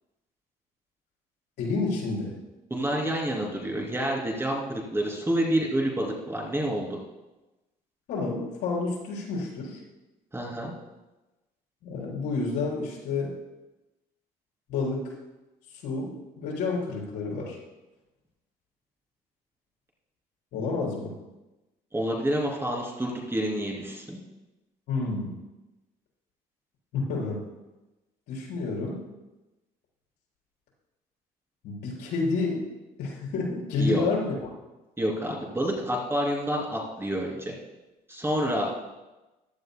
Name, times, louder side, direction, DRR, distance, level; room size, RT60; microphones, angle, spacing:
voice 1, 1.6-2.3 8.1-9.8 11.8-13.3 14.7-15.1 15.8-17.6 20.5-21.1 24.9-25.3 26.9-27.4 28.3-29.0 31.6-32.6 33.0-34.5, left 3 dB, 80° left, -4 dB, 4.4 m, -29 dB
voice 2, 2.7-7.0 10.3-10.7 21.9-24.2 33.8-34.0 35.0-37.5 38.1-38.7, right 1 dB, 15° right, -1 dB, 2.8 m, -28 dB
15.5 x 12.0 x 2.2 m, 1.1 s
cardioid pair, 110°, 17 cm